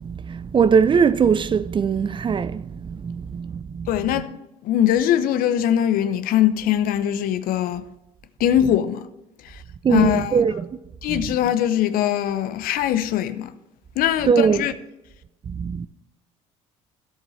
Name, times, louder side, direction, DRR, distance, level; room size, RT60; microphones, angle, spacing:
voice 1, 0.0-4.1 9.8-10.7 11.1-11.4 14.2-14.7 15.5-15.9, right 6 dB, 30° right, 0.5 m, -21 dB
voice 2, 3.9-4.3 4.6-7.8 8.4-9.1 9.4-9.6 9.9-10.4 11.0-13.5 14.0-14.7, left 11 dB, 60° left, 0.7 m, -21 dB
13.0 x 7.5 x 3.2 m
hypercardioid pair, 65°, 16 cm